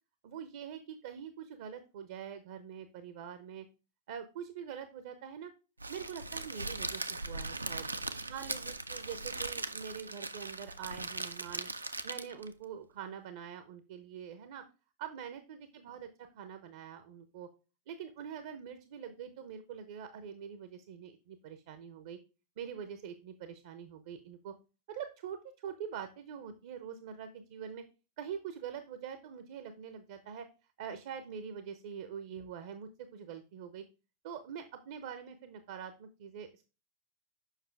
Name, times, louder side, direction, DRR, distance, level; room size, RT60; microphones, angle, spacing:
voice 1, 0.2-3.7 4.1-5.5 5.9-7.8 8.3-11.7 12.0-14.6 15.0-17.5 17.9-22.2 22.6-24.5 24.9-27.8 28.2-30.5 30.8-33.8 34.2-36.6, right 8 dB, 55° right, 10 dB, 0.8 m, -44 dB
Crackle, 5.8-12.5, right 2 dB, 80° right, 0.4 m, -39 dB
7.4 x 5.7 x 3.4 m, 0.32 s
figure-of-eight pair, 90°, 0 cm